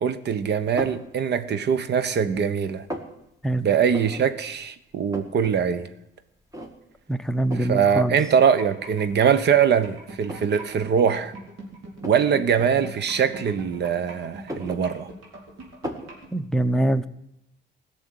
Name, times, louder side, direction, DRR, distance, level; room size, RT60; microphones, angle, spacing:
voice 1, 0.0-2.9 3.6-5.9 7.6-11.3 12.0-15.1, right 7 dB, 60° right, 1.1 m, -22 dB
sound 1, 0.8-1.1 1.6-2.3 2.6-3.1 3.9-4.3 4.6-4.7 4.9-5.5 5.9-6.0 6.5-7.0 7.5-7.8 8.6-8.7 9.2-10.6 11.0-11.2 12.0-12.3 13.3-14.0 14.3-15.4 15.8-16.2, equal, 15° right, 2.1 m, -36 dB
voice 2, 7.1-8.2 16.3-17.1, right 1 dB, 5° left, 0.7 m, -23 dB
sound 2, 8.3-16.3, right 3 dB, 80° right, 3.9 m, -41 dB
15.5 x 6.8 x 9.4 m
cardioid pair, 90°, 20 cm